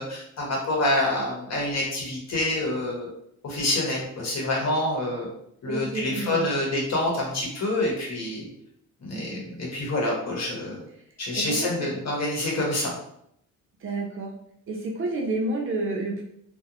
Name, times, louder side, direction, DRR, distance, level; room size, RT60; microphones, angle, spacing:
voice 1, 0.0-3.1 3.4-5.3 5.6-8.5 9.0-10.8 11.2-12.9, left 1 dB, 50° left, -2 dB, 1.0 m, -27 dB
voice 2, 5.7-6.5 9.1-9.5 11.3-11.9 13.8-14.3 14.7-16.2, right 2 dB, 40° right, 0 dB, 0.5 m, -30 dB
2.5 x 2.0 x 2.9 m, 0.73 s
cardioid pair, 130°, 34 cm